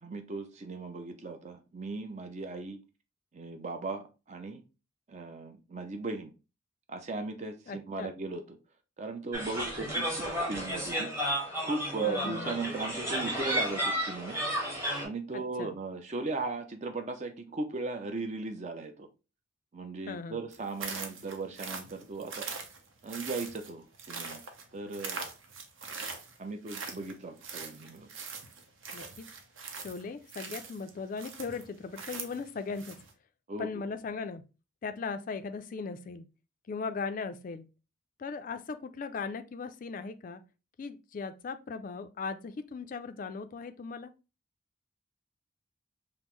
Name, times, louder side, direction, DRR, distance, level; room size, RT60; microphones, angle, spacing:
voice 1, 0.0-2.8 3.3-4.6 5.1-6.3 6.9-8.4 9.0-11.1 11.6-14.4 15.0-19.1 19.7-22.5 23.0-24.4 24.7-25.2 26.4-28.1 33.5-33.8, right 3 dB, 35° right, 0.5 m, -37 dB
voice 2, 7.7-8.1 12.0-12.6 15.3-15.8 20.1-20.4 28.9-29.3 29.7-33.0 33.6-34.5 34.8-36.3 36.7-37.7 38.2-40.4 40.8-44.1, left 4 dB, 45° left, 0.3 m, -38 dB
sound 1, 9.3-15.0, equal, 15° right, 1.0 m, -32 dB
sound 2, 20.5-33.1, right 5 dB, 80° right, 0.7 m, -42 dB
5.2 x 2.0 x 3.0 m
head